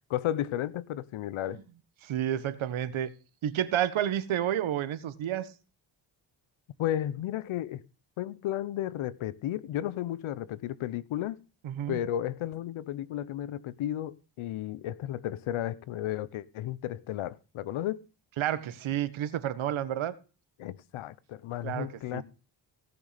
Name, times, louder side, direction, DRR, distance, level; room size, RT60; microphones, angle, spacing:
voice 1, 0.1-1.6 6.8-7.8 8.2-11.4 11.9-18.0 20.6-22.2, left 12 dB, 85° left, 1.0 m, -33 dB
voice 2, 2.0-3.1 3.4-5.5 11.6-12.0 18.4-20.1 21.6-22.2, right 11 dB, 75° right, 1.6 m, -30 dB
17.5 x 6.2 x 5.2 m
cardioid pair, 75°, 48 cm